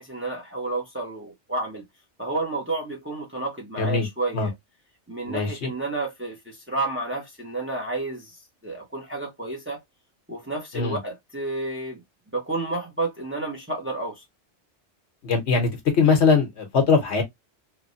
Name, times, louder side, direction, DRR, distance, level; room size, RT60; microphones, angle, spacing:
voice 1, 0.0-1.8 2.2-4.5 5.1-9.8 10.3-12.0 12.3-14.2, right 2 dB, 15° right, 0.7 m, -31 dB
voice 2, 5.3-5.7 10.7-11.0 15.2-15.7 16.0-17.2, left 5 dB, 70° left, 1.2 m, -21 dB
3.0 x 2.2 x 2.6 m
omnidirectional pair, 1.2 m